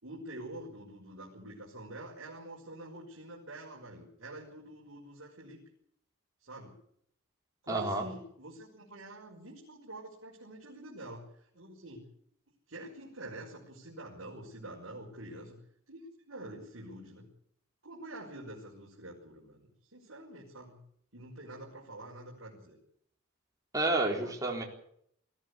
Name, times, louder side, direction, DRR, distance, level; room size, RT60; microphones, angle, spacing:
voice 1, 0.0-5.6 6.4-6.7 7.6-12.1 12.7-15.6 15.9-17.3 17.8-20.8 21.1-22.8 24.0-24.4, right 1 dB, 65° right, -3 dB, 5.6 m, -47 dB
voice 2, 7.7-8.0 23.7-24.6, right 2 dB, 15° right, -1 dB, 4.1 m, -30 dB
22.0 x 15.0 x 8.5 m, 0.68 s
head